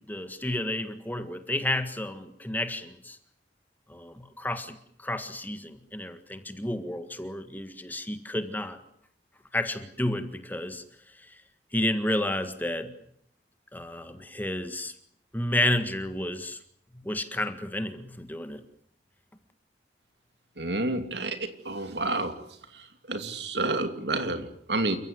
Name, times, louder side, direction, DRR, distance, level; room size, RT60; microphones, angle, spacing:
voice 1, 0.0-3.2 3.9-8.8 9.5-10.8 11.2-11.4 11.7-12.9 13.7-14.9 15.3-16.6 17.0-18.6, left 1 dB, 10° left, 9 dB, 1.7 m, -31 dB
voice 2, 20.6-22.3 23.1-25.0, right 2 dB, 70° right, 8 dB, 2.7 m, -29 dB
29.0 x 16.0 x 9.6 m, 0.69 s
head